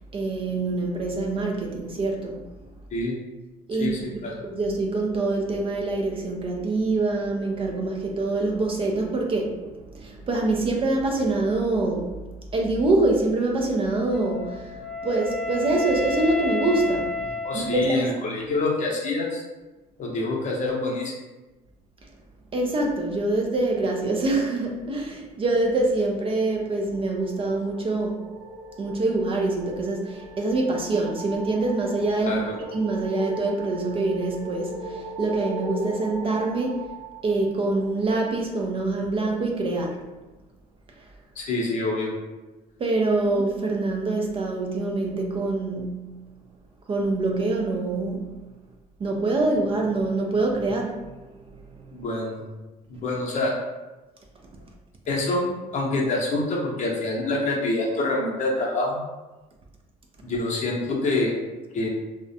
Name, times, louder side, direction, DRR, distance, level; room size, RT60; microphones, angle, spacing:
voice 1, 0.1-2.5 3.7-4.0 4.4-17.2 17.5-18.1 22.5-28.3 28.8-36.9 37.2-40.0 41.0-41.1 42.8-46.1 46.9-48.4 49.0-51.3 51.5-51.9, right 2 dB, 35° right, 1 dB, 0.4 m, -25 dB
voice 2, 3.8-4.4 17.4-19.4 20.0-21.1 32.2-32.6 41.4-42.1 51.9-52.4 52.9-53.6 55.1-59.0 60.2-61.3 61.7-61.9, left 2 dB, 45° left, -2 dB, 0.6 m, -26 dB
Wind instrument woodwind instrument, 14.1-18.3, left 3 dB, 5° left, 0.8 m, -31 dB
sound 1, 26.8-38.2, right 1 dB, 90° right, 0.5 m, -39 dB
2.3 x 2.1 x 2.7 m, 1.1 s
cardioid pair, 110°, 17 cm